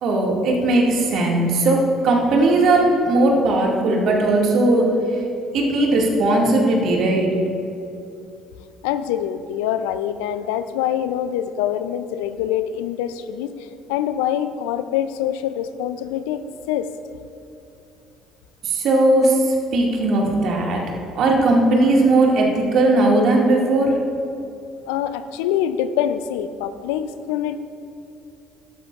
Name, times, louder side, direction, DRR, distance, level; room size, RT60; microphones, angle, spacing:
voice 1, 0.0-5.2 5.5-7.3 18.6-20.8 21.2-24.0, right 2 dB, 60° right, -1 dB, 2.1 m, -18 dB
voice 2, 8.8-16.9 24.9-27.6, left 10 dB, 75° left, 12 dB, 0.5 m, -25 dB
16.5 x 12.5 x 2.5 m, 2.7 s
hypercardioid pair, 60°, 0 cm